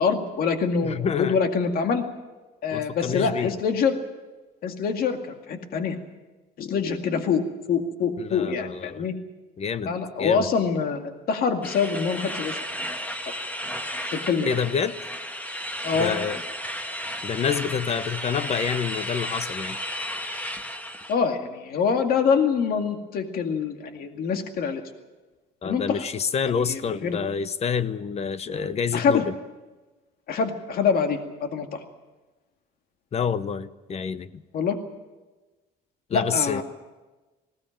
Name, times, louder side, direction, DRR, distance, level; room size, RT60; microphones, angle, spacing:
voice 1, 0.0-2.0 2.6-4.0 4.6-6.0 6.6-7.4 7.7-9.1 9.9-12.6 14.1-14.5 15.8-16.2 21.1-24.8 25.6-26.0 26.7-27.2 28.9-29.3 30.3-31.8 34.5-34.8 36.1-36.6, left 6 dB, 60° left, 5 dB, 2.2 m, -25 dB
voice 2, 0.8-1.4 2.7-3.5 8.2-9.1 9.6-10.5 14.4-15.0 16.0-16.4 17.2-19.8 25.6-29.3 33.1-34.4 36.1-36.6, left 6 dB, 40° left, 15 dB, 0.9 m, -28 dB
sound 1, 11.6-21.1, equal, 10° left, 1.7 m, -33 dB
20.5 x 17.0 x 8.9 m, 1.2 s
cardioid pair, 110°, 17 cm